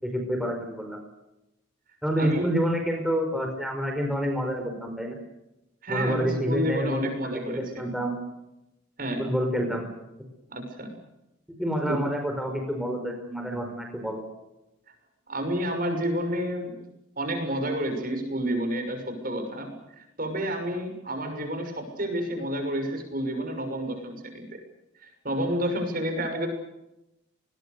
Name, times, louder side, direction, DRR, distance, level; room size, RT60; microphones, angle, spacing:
voice 1, 0.0-1.0 2.0-5.2 5.9-8.2 9.2-9.8 11.5-14.2, equal, ahead, 2 dB, 4.8 m, -28 dB
voice 2, 2.2-2.5 5.8-7.9 9.0-9.2 10.5-10.9 11.9-12.0 15.3-16.7 17.2-24.6 25.0-26.5, right 1 dB, 45° right, 6 dB, 6.4 m, -30 dB
29.5 x 21.0 x 6.8 m, 0.91 s
head